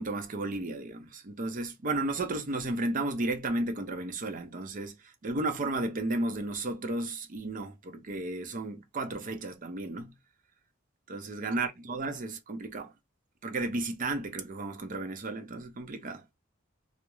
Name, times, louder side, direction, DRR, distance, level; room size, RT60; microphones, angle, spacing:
voice 1, 0.0-5.0 5.2-10.1 11.1-12.9 13.4-16.2, right 2 dB, 40° right, 0.5 m, -33 dB
2.3 x 2.0 x 2.9 m
head